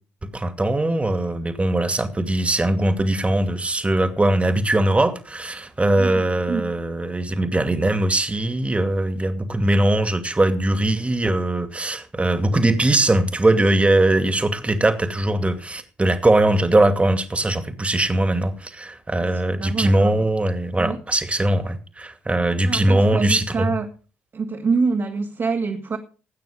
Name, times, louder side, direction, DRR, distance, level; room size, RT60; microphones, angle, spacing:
voice 1, 0.3-23.7, right 1 dB, 20° right, 2.5 m, -20 dB
voice 2, 6.0-6.7 19.6-20.2 20.8-21.0 22.6-23.9 24.3-26.0, right 4 dB, 45° right, 2.3 m, -25 dB
19.0 x 9.2 x 5.1 m
hypercardioid pair, 45°, 6 cm